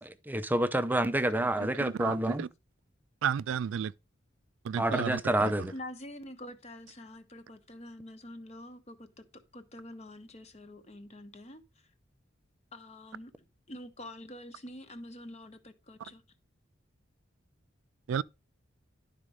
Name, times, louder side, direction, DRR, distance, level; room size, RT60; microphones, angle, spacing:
voice 1, 0.0-2.4 4.8-5.7, right 1 dB, 10° right, 0.5 m, -28 dB
voice 2, 1.6-2.5 3.2-3.9 4.6-5.7 18.1-18.2, right 8 dB, 85° right, 0.3 m, -33 dB
voice 3, 5.7-9.3 9.5-11.9 12.7-16.2, left 1 dB, 35° left, 1.0 m, -46 dB
11.0 x 4.2 x 4.9 m
head